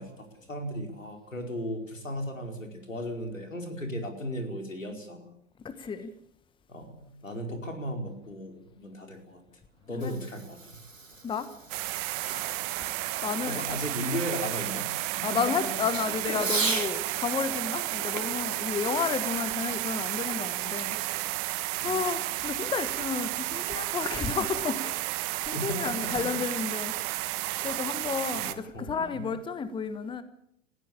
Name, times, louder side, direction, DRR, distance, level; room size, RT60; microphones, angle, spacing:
voice 1, 0.0-5.3 6.7-9.4 9.9-10.6 13.5-14.9 15.2-15.5 16.0-16.6 21.8-22.0 25.5-26.7 28.3-29.2, equal, 85° left, 4.9 m, -36 dB
voice 2, 5.6-6.1 10.0-10.1 11.2-11.5 11.8-11.9 12.2-12.7 13.2-13.6 15.2-21.3 21.8-25.2 25.4-26.9 27.6-30.2, left 6 dB, 15° left, 1.3 m, -32 dB
Fireworks, 9.7-17.0 18.1-19.8, right 4 dB, 80° right, 2.7 m, -38 dB
sound 1, 11.7-28.5, right 18 dB, 35° right, 1.4 m, -32 dB
20.0 x 15.0 x 8.7 m
figure-of-eight pair, 95°, 38 cm